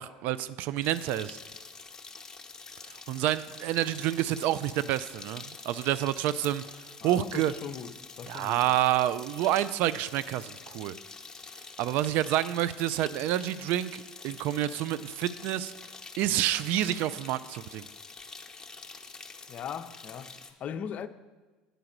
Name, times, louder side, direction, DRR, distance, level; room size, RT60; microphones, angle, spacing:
voice 1, 0.0-1.4 3.1-6.6 7.0-7.5 8.3-10.9 11.8-15.7 16.2-17.8, right 13 dB, 60° right, 0.3 m, -28 dB
sound 1, 0.8-20.5, left 4 dB, 20° left, 0.9 m, -46 dB
voice 2, 7.0-8.6 19.5-21.1, left 8 dB, 45° left, 0.5 m, -39 dB
9.0 x 4.7 x 6.5 m
hypercardioid pair, 75°, 3 cm